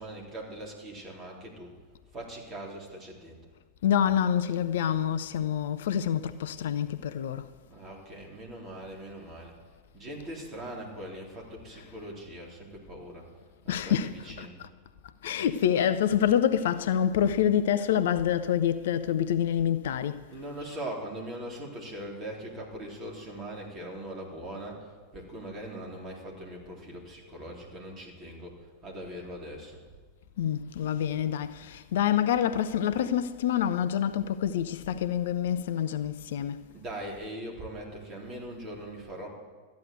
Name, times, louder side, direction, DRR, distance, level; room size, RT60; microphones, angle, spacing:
voice 1, 0.0-1.7 2.1-3.4 7.7-9.6 9.9-13.3 13.6-14.6 20.3-29.8 36.7-39.3, right 1 dB, 30° right, 3.7 m, -41 dB
voice 2, 3.8-7.5 11.8-12.0 13.7-14.7 15.2-20.3 20.6-20.8 30.4-36.6, left 9 dB, 60° left, 0.5 m, -27 dB
13.5 x 9.4 x 7.8 m
figure-of-eight pair, 90°, 0 cm